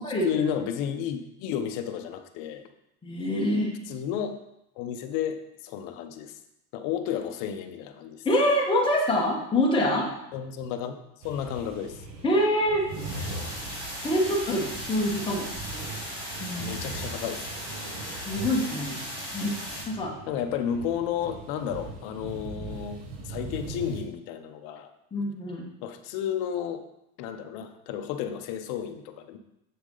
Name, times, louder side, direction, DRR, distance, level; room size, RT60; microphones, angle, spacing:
voice 1, 0.0-2.7 3.9-4.3 4.8-6.4 6.7-8.3 10.3-12.1 14.0-14.2 16.6-17.4 20.3-24.9 25.8-26.9 27.2-29.4, left 9 dB, 45° left, 7 dB, 0.8 m, -32 dB
voice 2, 3.0-3.7 8.2-10.1 12.2-12.9 14.0-15.5 16.4-16.7 18.0-19.0 19.3-19.6 19.9-20.1 25.1-25.7, left 1 dB, 10° left, -2 dB, 1.4 m, -25 dB
sound 1, 11.2-24.0, right 2 dB, 35° right, 1.3 m, -41 dB
sound 2, 12.9-19.8, equal, 10° right, 3.2 m, -37 dB
7.7 x 6.8 x 3.9 m, 0.85 s
supercardioid pair, 150°, 48 cm